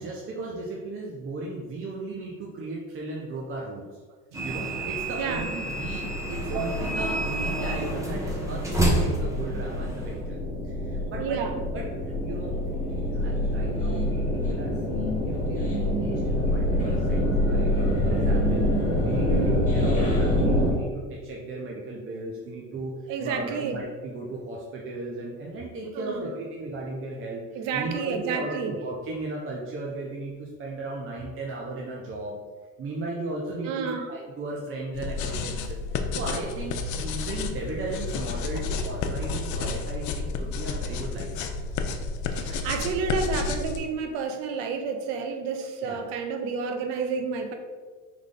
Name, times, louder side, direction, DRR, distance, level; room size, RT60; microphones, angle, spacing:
voice 1, 0.0-3.8 4.4-10.4 10.6-11.4 11.7-12.5 12.9-18.7 19.0-22.9 23.2-32.4 32.8-41.6 45.8-46.0, right 2 dB, 30° right, -3 dB, 0.7 m, -36 dB
sound 1, 4.3-10.2, right 1 dB, 5° right, 0.9 m, -29 dB
sound 2, 5.0-20.7, left 1 dB, 20° left, 1.5 m, -26 dB
voice 2, 5.2-5.5 6.4-6.8 7.8-7.9 11.2-11.6 19.3-19.6 23.1-23.8 25.9-26.3 27.5-28.7 33.6-34.0 42.3-47.5, right 5 dB, 70° right, 5 dB, 0.8 m, -30 dB
sound 3, 34.9-43.8, left 4 dB, 45° left, 0.5 m, -31 dB
3.8 x 3.1 x 3.7 m, 1.4 s
supercardioid pair, 95°, 41 cm